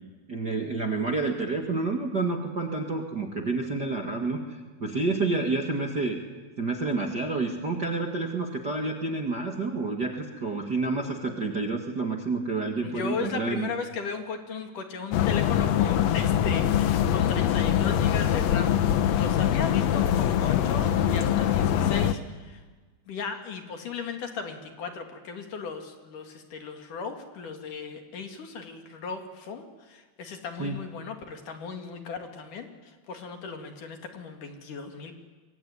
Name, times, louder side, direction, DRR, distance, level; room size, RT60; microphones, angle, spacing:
voice 1, 0.3-6.2 6.6-13.7 30.6-30.8, right 3 dB, 35° right, 2 dB, 1.8 m, -29 dB
voice 2, 12.8-18.7 19.1-22.6 23.1-35.1, left 5 dB, 60° left, 5 dB, 3.5 m, -36 dB
sound 1, 15.1-22.1, left 10 dB, 85° left, 1.5 m, -23 dB
26.0 x 23.5 x 9.7 m, 1.4 s
omnidirectional pair, 4.5 m